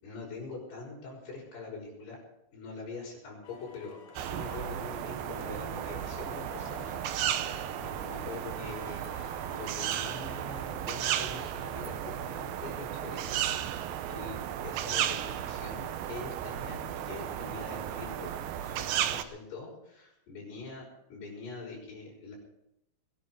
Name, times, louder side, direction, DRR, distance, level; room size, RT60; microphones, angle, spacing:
voice 1, 0.0-2.2 2.5-9.1 9.5-20.8 21.1-22.3, left 4 dB, 85° left, -4 dB, 8.0 m, -44 dB
sound 1, 3.4-10.7, left 6 dB, 60° left, 2.6 m, -51 dB
sound 2, 4.2-19.2, right 11 dB, 75° right, 2.6 m, -34 dB
22.0 x 11.0 x 4.9 m, 0.82 s
omnidirectional pair, 4.6 m